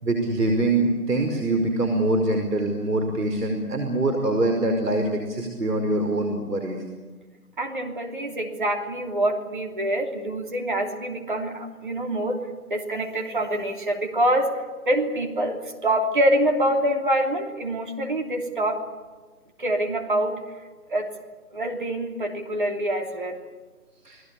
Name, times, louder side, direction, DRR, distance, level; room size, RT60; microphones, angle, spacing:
voice 1, 0.0-6.8 24.0-24.2, right 2 dB, 90° right, 4 dB, 5.3 m, -24 dB
voice 2, 7.6-12.4 12.7-18.9 19.6-20.4 20.9-21.1 21.5-23.4, right 1 dB, 35° right, 2 dB, 3.0 m, -25 dB
29.5 x 19.5 x 8.5 m, 1.3 s
figure-of-eight pair, 175°, 45 cm